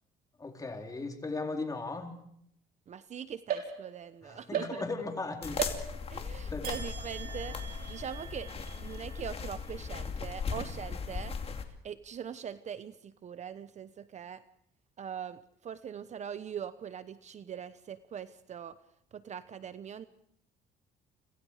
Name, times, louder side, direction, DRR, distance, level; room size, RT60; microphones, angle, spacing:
voice 1, 0.4-2.2 4.2-5.6 6.5-6.7, left 3 dB, 20° left, 3 dB, 4.3 m, -37 dB
voice 2, 2.9-4.8 6.1-11.4 11.8-14.4 15.0-18.8 19.1-20.1, right 8 dB, 45° right, 13 dB, 1.0 m, -42 dB
sound 1, 3.5-4.1 4.5-5.2 5.6-6.2 6.6-10.1, right 8 dB, 65° right, 5.9 m, -40 dB
sound 2, 5.4-11.6, left 5 dB, 35° left, 2.7 m, -38 dB
30.0 x 26.5 x 5.0 m, 0.72 s
cardioid pair, 110°, 17 cm